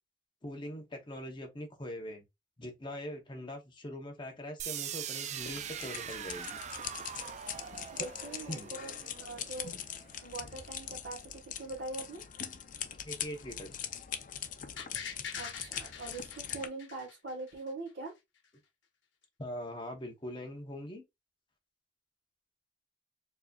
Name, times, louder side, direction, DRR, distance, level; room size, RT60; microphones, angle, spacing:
voice 1, 0.4-2.2 2.6-6.6 8.0-8.1 8.5-8.7 13.0-13.8 19.4-21.0, equal, 25° left, 0.9 m, -42 dB
sound 1, 4.6-10.5, right 9 dB, 40° right, 0.3 m, -42 dB
sound 2, 5.4-16.7, left 9 dB, 45° left, 0.5 m, -42 dB
voice 2, 7.9-8.9 9.2-9.8 10.2-12.2 15.4-18.1, right 2 dB, 70° right, 1.5 m, -42 dB
sound 3, 14.8-17.7 18.1-18.2, left 6 dB, 80° left, 0.9 m, -44 dB
4.6 x 2.8 x 2.3 m
head